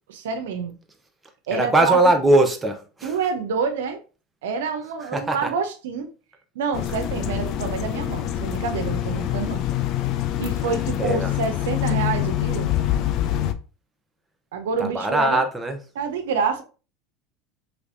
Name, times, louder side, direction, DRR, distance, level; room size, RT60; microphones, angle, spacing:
voice 1, 0.1-0.8 1.5-2.1 3.0-4.0 4.4-6.1 6.5-9.6 10.4-12.7 14.5-15.4 15.9-16.6, right 5 dB, 80° right, 0.5 m, -27 dB
voice 2, 1.5-3.1 5.1-5.5 11.0-11.3 14.8-15.8, right 2 dB, 15° right, 0.7 m, -20 dB
sound 1, 6.7-13.5, left 12 dB, 55° left, 0.4 m, -25 dB
3.2 x 3.0 x 2.6 m
hypercardioid pair, 90°, 0 cm